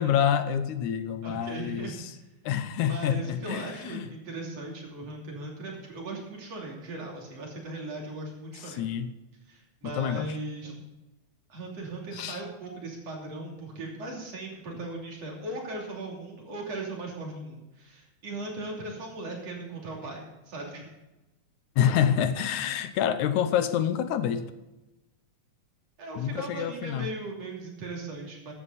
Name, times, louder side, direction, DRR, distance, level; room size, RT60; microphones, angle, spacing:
voice 1, 0.0-2.1 2.5-4.1 8.6-9.1 9.8-10.4 12.1-12.4 21.8-24.5 26.2-27.1, left 9 dB, 80° left, 11 dB, 2.2 m, -27 dB
voice 2, 1.2-2.0 2.9-8.8 9.5-10.8 11.5-20.9 26.0-28.5, right 2 dB, 55° right, -1 dB, 4.0 m, -38 dB
15.0 x 11.0 x 4.1 m, 1.0 s
omnidirectional pair, 3.5 m